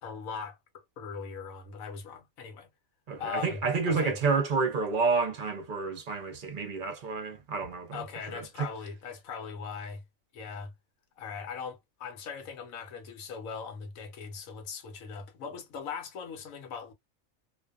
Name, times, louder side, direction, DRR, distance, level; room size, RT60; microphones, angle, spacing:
voice 1, 0.0-2.7 3.2-4.2 7.9-10.0 10.3-10.7 11.2-16.9, left 6 dB, 80° left, 1.2 m, -40 dB
voice 2, 3.1-8.0 8.3-8.7, right 4 dB, 50° right, 0.7 m, -29 dB
2.6 x 2.2 x 2.3 m
omnidirectional pair, 1.4 m